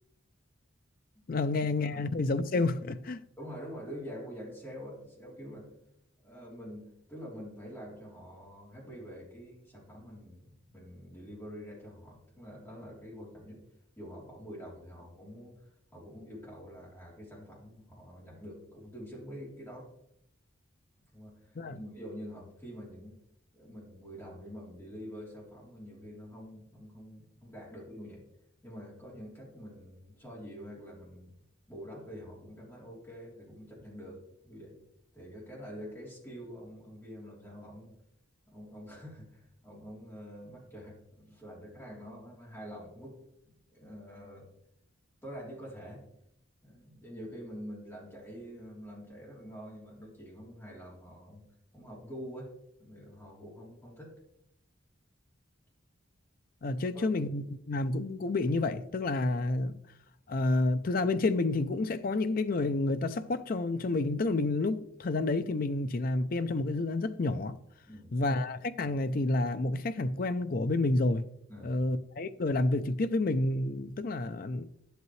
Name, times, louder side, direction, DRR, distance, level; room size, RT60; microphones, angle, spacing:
voice 1, 1.3-3.2 21.6-21.8 56.6-59.8 60.3-67.5 68.1-71.3 71.6-74.6, left 2 dB, 45° left, 0.5 m, -29 dB
voice 2, 3.4-5.7 6.2-13.6 14.0-15.5 15.9-19.9 21.1-23.2 23.5-28.2 28.6-31.3 31.7-34.8 35.1-37.9 38.5-43.2 43.7-44.5 45.2-46.1 46.6-51.5 51.7-52.5 52.8-54.1 56.9-57.0 67.9-68.1 71.5-71.7, equal, 10° left, 3.5 m, -46 dB
10.5 x 8.2 x 3.2 m
head